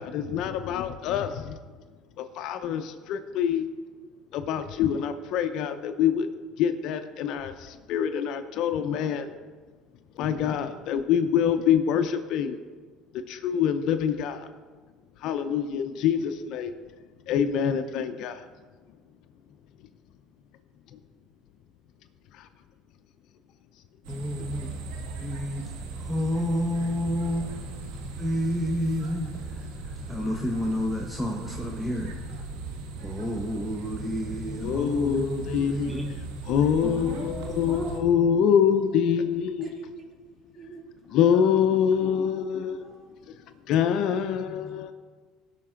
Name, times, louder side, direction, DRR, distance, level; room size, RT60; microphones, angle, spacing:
voice 1, 0.0-1.5 2.2-3.7 4.3-6.3 6.6-7.5 7.9-9.3 10.2-12.6 13.3-14.4 15.2-16.7 17.3-18.4 34.6-35.9 36.5-39.7 41.1-42.8 43.7-44.9, left 8 dB, 65° left, 0.6 m, -25 dB
sound 1, 24.0-38.0, right 3 dB, 85° right, 1.5 m, -38 dB
voice 2, 24.1-24.7 25.2-25.6 26.0-27.5 28.2-29.3 30.1-32.1 33.0-36.1 38.2-38.4, equal, ahead, 1.0 m, -30 dB
voice 3, 36.8-38.0 38.4-38.5 39.6-40.2 40.6-40.8 41.3-41.6 41.9-43.1, right 3 dB, 25° right, 2.1 m, -40 dB
17.0 x 5.9 x 3.8 m
supercardioid pair, 100°, 0 cm